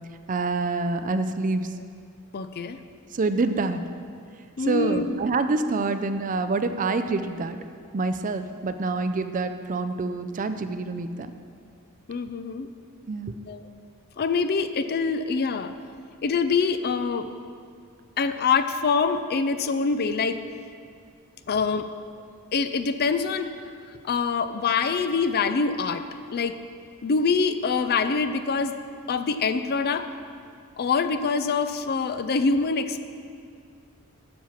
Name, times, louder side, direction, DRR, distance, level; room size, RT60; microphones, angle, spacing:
voice 1, 0.3-1.7 3.1-3.8 4.6-7.6 7.9-11.3 13.1-13.3, right 3 dB, 35° right, 9 dB, 0.4 m, -26 dB
voice 2, 2.3-2.8 4.6-5.2 12.1-12.7 13.5-13.6 14.2-15.8 16.2-17.3 18.2-20.4 21.5-21.9 22.5-23.5 24.0-26.6 27.0-28.7 29.1-30.1 30.8-33.1, left 5 dB, 45° left, 11 dB, 0.4 m, -25 dB
9.5 x 7.4 x 5.7 m, 2.3 s
head